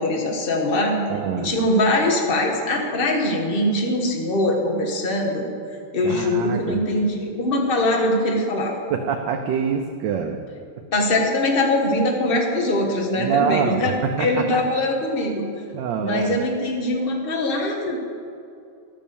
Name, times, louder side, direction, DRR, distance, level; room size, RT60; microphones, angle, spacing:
voice 1, 0.0-1.0 1.3-5.5 5.9-8.8 10.9-15.4 16.0-18.0, left 1 dB, 30° left, 1 dB, 1.5 m, -22 dB
voice 2, 1.1-1.5 6.0-6.8 8.9-10.4 13.2-14.6 15.7-16.4, right 7 dB, 70° right, 5 dB, 1.3 m, -25 dB
12.5 x 7.4 x 7.0 m, 2.5 s
omnidirectional pair, 2.2 m